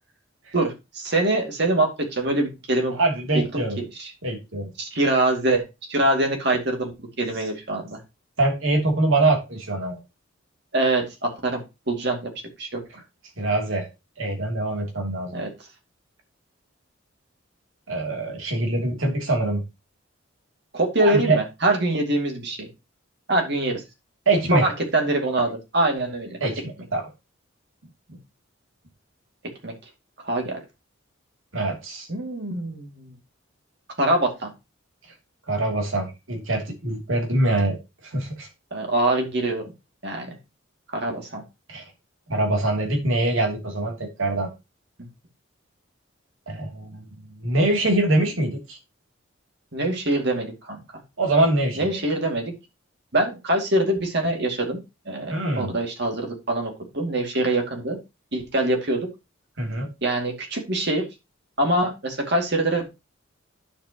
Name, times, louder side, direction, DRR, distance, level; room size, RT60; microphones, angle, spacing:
voice 1, 0.5-3.0 3.3-4.1 4.8-5.6 5.9-8.0 10.7-11.6 11.9-12.3 12.6-12.8 15.3-15.5 20.7-22.7 23.3-23.8 24.5-26.4 29.6-29.7 30.2-30.6 32.1-33.1 34.0-34.5 38.7-39.7 40.0-40.4 40.9-41.4 49.7-50.8 51.8-52.5 53.1-54.8 55.1-58.0 58.3-59.1 60.0-61.0 61.6-62.9, right 2 dB, 55° right, 2.5 m, -24 dB
voice 2, 2.9-3.8 4.2-4.7 8.4-10.0 13.4-13.9 14.2-15.4 17.9-19.6 21.0-21.4 24.3-24.6 26.4-27.1 31.5-32.1 35.5-37.8 38.0-38.5 41.7-41.8 42.3-44.5 46.5-48.8 51.2-52.0 55.3-55.8 59.6-59.9, right 2 dB, 80° right, 3.0 m, -24 dB
10.0 x 7.3 x 3.0 m
head